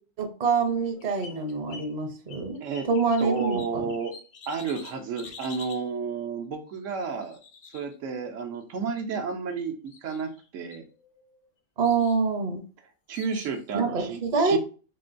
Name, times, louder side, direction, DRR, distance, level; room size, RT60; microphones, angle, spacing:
voice 1, 0.2-2.6 2.9-3.8 11.8-12.6 13.7-14.6, right 4 dB, 45° right, 3 dB, 0.6 m, -25 dB
sound 1, 0.8-1.9 2.3-5.9 7.0-8.4 9.3-9.6 9.9-10.5 10.7-11.5 11.8-12.2 13.1-13.6, left 5 dB, 55° left, 0.7 m, -47 dB
voice 2, 3.2-4.1 4.5-7.4 7.7-10.8 13.1-14.6, right 5 dB, 80° right, 4 dB, 1.0 m, -32 dB
4.0 x 2.2 x 2.5 m, 0.37 s
omnidirectional pair, 1.3 m